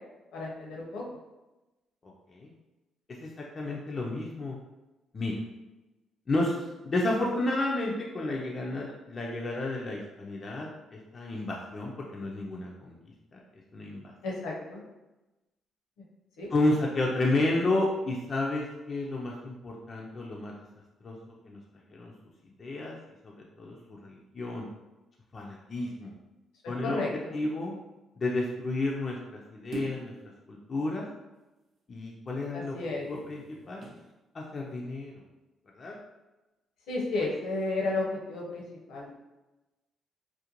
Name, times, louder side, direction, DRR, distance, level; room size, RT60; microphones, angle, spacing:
voice 1, 0.3-1.1 14.2-14.8 16.4-16.5 26.6-27.3 32.5-33.1 36.9-38.6 38.9-39.1, left 2 dB, 85° left, -3 dB, 0.7 m, -32 dB
voice 2, 2.0-2.5 3.2-4.6 5.1-5.4 6.3-13.0 13.3-13.4 13.7-14.1 16.5-20.5 21.0-21.2 21.4-21.6 21.9-22.1 22.6-23.0 23.2-23.8 24.0-24.7 25.3-26.1 26.7-27.0 27.3-27.7 28.2-30.1 30.5-31.1 31.9-32.8 33.1-33.8 34.3-35.1 35.7-36.0 37.2-37.3, left 2 dB, 40° left, -2 dB, 0.4 m, -31 dB
sound 1, 29.7-30.2 32.8-34.1 34.6-34.8, right 1 dB, 55° right, 0.6 m, -42 dB
2.5 x 2.1 x 2.8 m, 1.1 s
cardioid pair, 90°, 0 cm